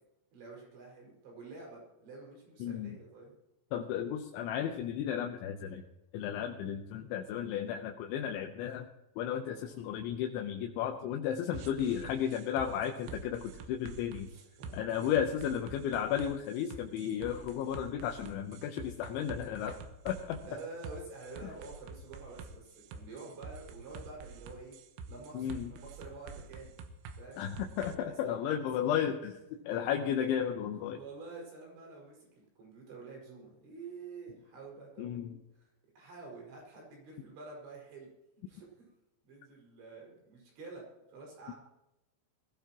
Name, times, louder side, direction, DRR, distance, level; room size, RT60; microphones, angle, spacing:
voice 1, 0.3-3.4 9.5-9.8 14.3-14.7 15.3-15.4 20.4-24.8 25.1-26.7 27.2-27.4 28.0-28.7 29.7-29.8 30.9-35.2 36.0-38.1 38.5-38.9 39.2-41.5, right 3 dB, 70° right, -1 dB, 7.9 m, -48 dB
voice 2, 2.6-3.0 3.7-5.8 6.1-8.9 9.2-14.3 14.7-19.8 20.1-20.4 25.3-25.7 27.4-29.4 29.7-31.0 35.0-35.4 41.5-41.6, left 9 dB, 85° left, 3 dB, 3.3 m, -34 dB
sound 1, 11.5-28.0, right 4 dB, 90° right, 3.5 m, -47 dB
22.0 x 15.5 x 3.0 m, 0.92 s
omnidirectional pair, 5.3 m